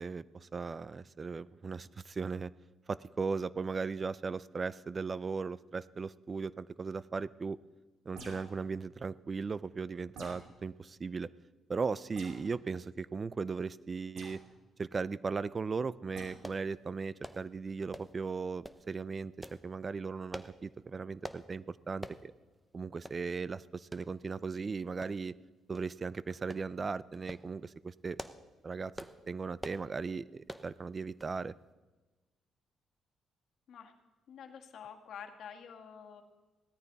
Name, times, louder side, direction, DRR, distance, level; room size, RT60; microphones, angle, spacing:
voice 1, 0.0-2.5 2.9-7.6 8.1-11.3 11.7-14.4 14.8-19.3 19.6-22.3 22.7-25.3 25.7-28.2 28.6-28.9 29.3-31.5, right 4 dB, 35° right, 19 dB, 0.4 m, -37 dB
sound 1, 8.1-8.6 10.1-10.5 12.2-12.5 14.2-14.4 16.1-16.4, right 3 dB, 80° right, 3.3 m, -48 dB
sound 2, 16.4-16.6 17.2-17.4 17.9-18.2 18.6-18.8 19.4-19.6 20.3-20.6 21.2-21.4 22.0-22.2 22.6-22.7 23.1-23.2 23.9-24.1 25.0-25.4 25.7-25.9 26.5-26.7 27.1-27.5 28.0-28.5 28.9-29.2 29.6-29.9 30.5-30.7 31.2-31.4 31.7-31.8, right 1 dB, 5° right, 0.8 m, -45 dB
voice 2, 34.3-36.2, left 7 dB, 65° left, 4 dB, 1.7 m, -48 dB
17.0 x 13.0 x 4.0 m, 1.2 s
cardioid pair, 90°, 0 cm